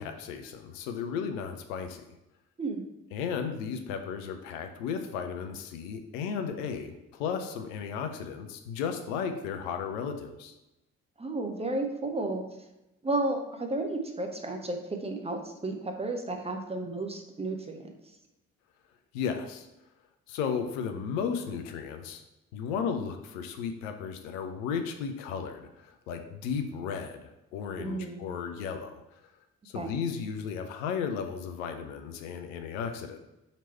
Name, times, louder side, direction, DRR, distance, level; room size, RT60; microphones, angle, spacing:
voice 1, 0.0-2.0 3.1-10.5 19.1-19.7 20.3-22.2 22.5-28.9 29.6-33.2, left 6 dB, 70° left, 7 dB, 0.5 m, -34 dB
voice 2, 11.2-12.4 13.0-17.9 27.8-28.2 29.7-29.9, right 2 dB, 15° right, 3 dB, 0.6 m, -32 dB
3.9 x 3.0 x 4.3 m, 0.93 s
figure-of-eight pair, 45°, 40 cm